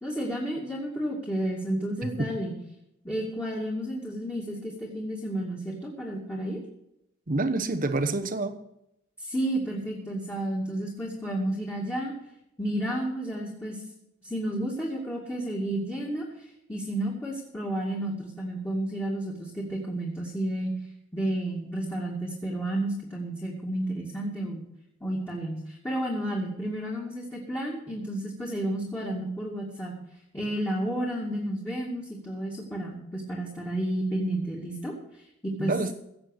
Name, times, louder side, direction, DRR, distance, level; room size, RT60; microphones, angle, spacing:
voice 1, 0.0-2.5 3.0-6.6 9.2-12.1 12.6-13.8 14.2-20.7 21.1-24.6 25.0-30.0 30.3-34.9 35.4-35.7, right 1 dB, 10° left, 2.4 m, -31 dB
voice 2, 7.3-8.6 35.6-35.9, right 2 dB, 40° right, 1.0 m, -27 dB
16.5 x 7.6 x 6.6 m
head